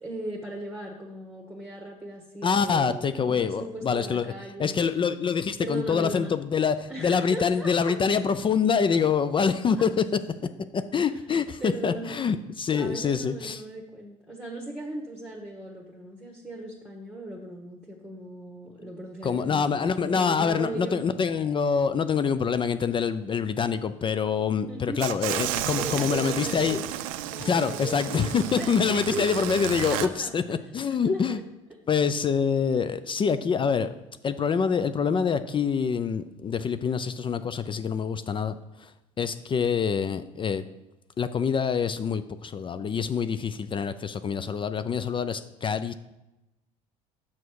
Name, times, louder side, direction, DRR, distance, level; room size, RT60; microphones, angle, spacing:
voice 1, 0.0-4.9 5.6-6.3 6.9-8.0 9.8-9.9 11.6-12.2 12.7-21.0 24.7-25.0 25.8-26.9 27.3-29.5 29.9-30.3 31.0-31.4, right 1 dB, 5° right, -1 dB, 1.4 m, -38 dB
voice 2, 2.4-4.3 4.6-10.0 10.7-13.6 19.2-26.8 27.4-31.4 31.9-33.9 34.2-38.9 39.2-40.7 41.2-45.9, left 6 dB, 30° left, 12 dB, 0.4 m, -26 dB
sound 1, 25.0-30.1, right 12 dB, 85° right, 0.4 m, -32 dB
6.1 x 5.8 x 4.7 m, 0.97 s
hypercardioid pair, 75°, 17 cm